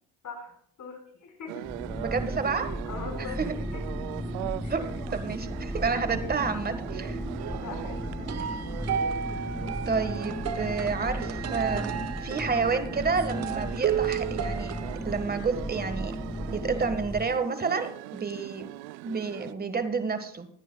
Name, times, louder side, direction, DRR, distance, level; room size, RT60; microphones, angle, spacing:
voice 1, 0.2-1.7 2.9-4.0 4.6-4.8 5.9-6.6 7.6-8.4, left 5 dB, 55° left, 3 dB, 4.7 m, -43 dB
sound 1, 1.5-19.5, right 19 dB, 80° right, 0.5 m, -41 dB
sound 2, 1.6-17.3, equal, 5° left, 2.4 m, -35 dB
voice 2, 2.0-2.8 3.4-3.5 4.7-7.2 9.8-14.7 15.0-16.2 16.5-18.7 19.0-20.5, right 5 dB, 25° right, 9 dB, 1.5 m, -30 dB
sound 3, 7.4-15.0, right 8 dB, 45° right, 1.1 m, -33 dB
20.5 x 9.9 x 2.3 m, 0.64 s
supercardioid pair, 75°, 36 cm